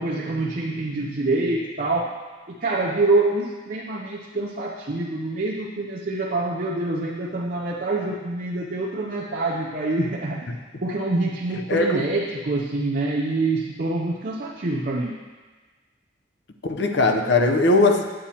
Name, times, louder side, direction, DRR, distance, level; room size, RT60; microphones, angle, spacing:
voice 1, 0.0-2.1 2.6-10.5 10.8-15.2, right 2 dB, 45° right, -2 dB, 0.6 m, -26 dB
voice 2, 11.7-12.0 16.7-18.0, left 2 dB, 60° left, 4 dB, 0.7 m, -19 dB
9.9 x 8.5 x 2.9 m, 1.4 s
head